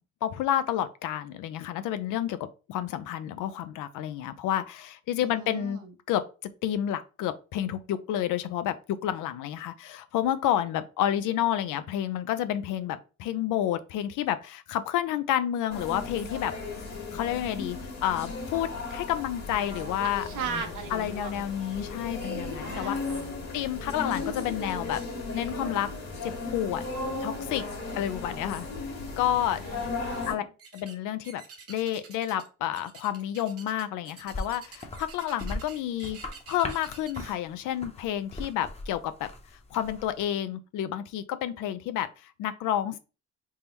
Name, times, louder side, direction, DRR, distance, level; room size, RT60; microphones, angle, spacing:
voice 1, 0.2-2.4 2.7-5.8 6.1-16.5 17.1-20.2 20.9-22.9 23.5-25.0 25.3-25.9 26.2-26.8 27.2-27.6 28.0-28.7 29.2-29.6 30.2-30.4 30.7-31.4 31.7-36.2 36.5-39.3 39.7-43.0, left 11 dB, 85° left, 0.5 m, -30 dB
voice 2, 5.2-5.9 20.0-21.4 22.6-23.3 29.5-30.4, right 6 dB, 80° right, 0.9 m, -38 dB
sound 1, 15.7-30.3, left 3 dB, 60° left, 1.7 m, -36 dB
sound 2, 30.6-31.0 31.2-32.5 32.7-37.3, right 5 dB, 50° right, 0.9 m, -48 dB
sound 3, 34.3-40.2, left 2 dB, 20° left, 0.8 m, -40 dB
3.6 x 2.0 x 4.3 m
cardioid pair, 90°, 30 cm